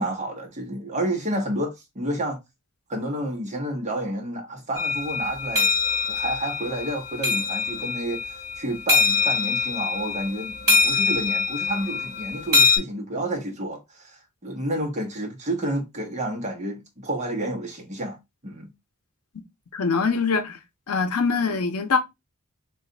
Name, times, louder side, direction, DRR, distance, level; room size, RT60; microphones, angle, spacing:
voice 1, 0.0-2.4 2.9-5.7 6.1-8.2 8.6-18.2 18.4-18.7, right 1 dB, 30° right, 1.1 m, -30 dB
sound 1, 4.8-12.8, left 4 dB, 15° right, 2.4 m, -24 dB
voice 2, 19.7-20.6 20.9-22.0, left 5 dB, 75° left, 0.6 m, -23 dB
3.1 x 2.5 x 3.8 m
head